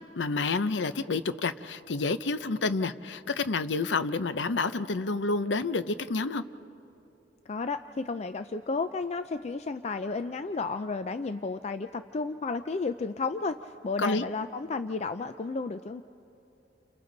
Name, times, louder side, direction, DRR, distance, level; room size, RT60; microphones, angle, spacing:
voice 1, 0.2-6.4 14.0-14.2, left 3 dB, 75° left, 13 dB, 0.7 m, -29 dB
voice 2, 7.5-16.0, left 4 dB, 35° left, 10 dB, 0.4 m, -32 dB
30.0 x 28.5 x 4.0 m, 2.9 s
head